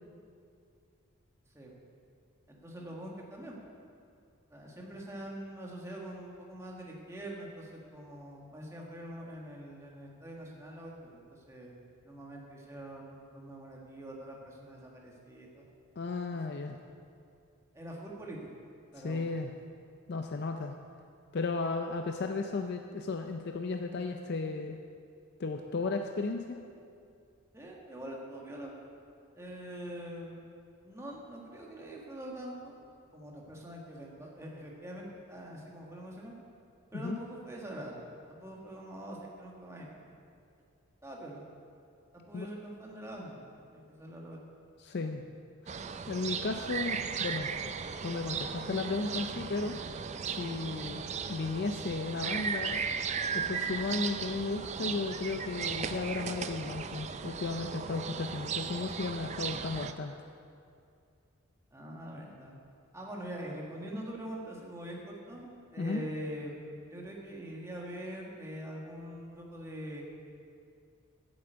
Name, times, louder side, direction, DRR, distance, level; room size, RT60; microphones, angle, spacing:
voice 1, 2.5-3.6 4.5-11.7 12.0-15.6 16.5-16.6 17.7-18.6 18.9-19.2 27.5-28.7 29.3-30.4 30.8-32.8 33.1-36.3 36.9-38.0 38.3-40.1 41.0-41.4 42.1-43.4 43.7-44.4 50.9-51.0 61.7-62.6 62.9-65.5 65.7-70.0, right 1 dB, 15° right, -2 dB, 1.5 m, -44 dB
voice 2, 16.0-16.8 19.0-19.5 20.1-20.8 21.3-24.8 25.4-26.6 36.9-37.2 42.3-42.5 44.8-45.3 46.1-47.5 48.0-49.9 50.2-51.0 51.3-52.8 53.3-60.1 65.8-66.0, left 3 dB, 50° left, 5 dB, 0.4 m, -34 dB
sound 1, 45.7-59.9, right 6 dB, 30° right, 0.4 m, -36 dB
8.8 x 7.9 x 7.9 m, 2.4 s
head